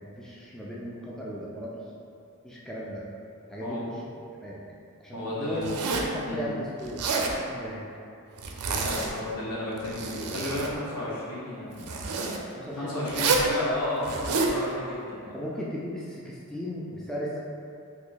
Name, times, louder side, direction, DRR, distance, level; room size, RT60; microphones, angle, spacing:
voice 1, 0.0-1.7 2.4-3.0 3.5-3.9 4.4-4.6 5.0-7.9 12.5-13.1 15.3-17.4, equal, 5° left, -6 dB, 0.3 m, -36 dB
voice 2, 5.1-5.7 6.2-6.4 8.8-12.0 12.7-15.3, left 1 dB, 85° left, -8 dB, 1.0 m, -33 dB
Zipper (clothing), 5.6-6.2 6.8-7.4 8.4-9.3 9.7-10.7 11.8-12.4 13.1-13.5 14.0-14.6, right 4 dB, 85° right, 0.4 m, -28 dB
2.8 x 2.7 x 3.9 m, 2.5 s
head